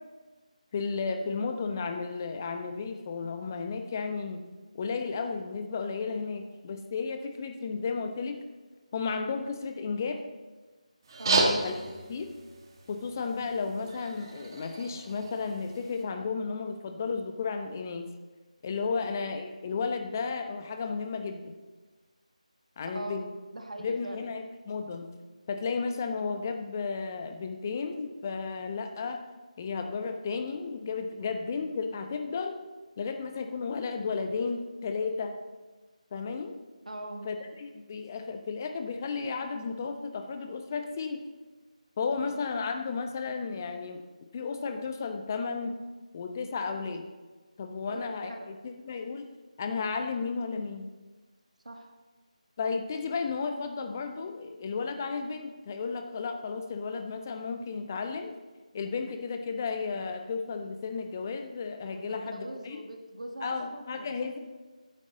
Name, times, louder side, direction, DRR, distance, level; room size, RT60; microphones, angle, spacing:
voice 1, 0.7-4.4 4.7-8.4 8.9-10.2 11.3-11.7 12.1-12.3 12.9-18.1 18.6-21.5 22.8-23.3 23.8-25.1 25.5-29.2 29.6-32.6 33.0-35.4 36.1-36.5 37.2-41.2 42.0-44.0 44.3-45.7 46.1-47.0 47.6-49.3 49.6-50.9 52.6-58.3 58.7-62.8 63.4-64.4, left 5 dB, 25° left, 6 dB, 0.9 m, -33 dB
sound 1, 11.0-16.0, right 3 dB, 35° right, 1.7 m, -32 dB
voice 2, 11.2-11.5 18.9-19.1 22.9-23.3 23.5-24.3 36.8-37.3 42.0-42.3 47.9-48.6 51.6-51.9 61.9-64.2, right 1 dB, 70° right, 3 dB, 1.6 m, -41 dB
13.5 x 10.0 x 4.0 m, 1.3 s
figure-of-eight pair, 160°, 4 cm